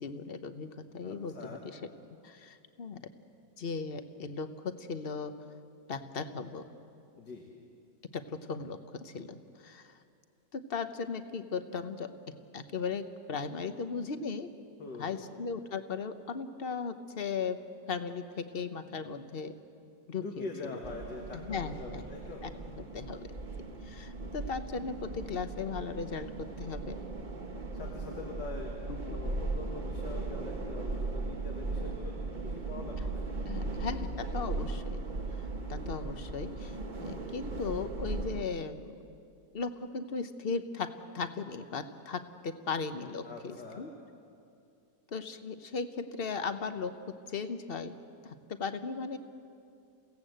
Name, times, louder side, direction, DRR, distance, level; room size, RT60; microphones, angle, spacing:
voice 1, 0.0-1.8 2.2-3.0 3.6-5.3 5.9-6.6 8.1-10.0 10.5-12.1 12.5-14.5 15.0-17.6 17.9-19.5 20.1-20.4 21.3-22.0 22.4-23.3 23.8-27.0 28.9-29.2 33.0-33.1 33.5-35.0 35.4-39.0 39.5-43.9 45.1-46.9 47.3-47.9 48.2-49.2, left 5 dB, 40° left, 9 dB, 1.0 m, -37 dB
voice 2, 1.0-1.7 7.2-7.5 14.8-15.3 20.2-22.4 27.7-28.7 29.0-33.7 43.2-43.9, left 3 dB, 80° left, 0 dB, 2.5 m, -44 dB
sound 1, 20.8-38.4, right 3 dB, 30° right, 1.2 m, -38 dB
29.0 x 17.0 x 7.9 m, 2.5 s
omnidirectional pair, 1.8 m